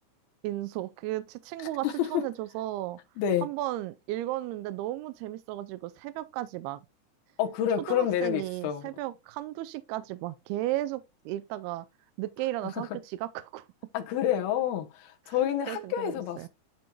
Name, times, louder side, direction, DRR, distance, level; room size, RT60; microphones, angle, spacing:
voice 1, 0.4-3.0 3.4-6.8 7.9-11.9 12.2-13.7 15.3-15.4 15.7-16.5, right 15 dB, 85° right, 2.4 m, -34 dB
voice 2, 1.8-2.2 3.2-3.5 7.4-8.9 13.9-16.5, left 10 dB, 75° left, 2.7 m, -28 dB
11.5 x 4.5 x 2.2 m
omnidirectional pair, 4.7 m